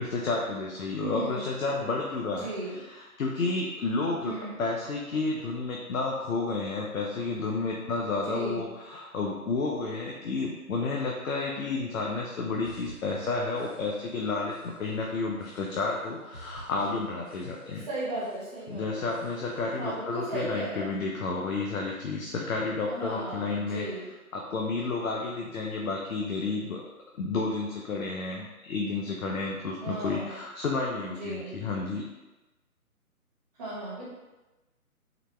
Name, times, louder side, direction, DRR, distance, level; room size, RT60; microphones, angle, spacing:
voice 1, 0.0-17.9 18.7-23.8 24.3-26.8 27.1-32.0, left 3 dB, 65° left, -1 dB, 0.6 m, -31 dB
voice 2, 1.0-1.5 2.2-2.8 4.2-4.6 8.2-8.7 17.8-19.1 19.7-20.9 22.9-24.1 29.8-30.4 31.0-31.6 33.6-34.0, right 1 dB, 25° right, -8 dB, 1.1 m, -36 dB
sound 1, 12.6-14.2 14.5-15.0 15.4-16.0 16.3-17.9 18.2-18.7 19.1-19.7, right 1 dB, 5° right, 0.9 m, -51 dB
3.9 x 2.2 x 3.0 m, 1.1 s
figure-of-eight pair, 145°, 44 cm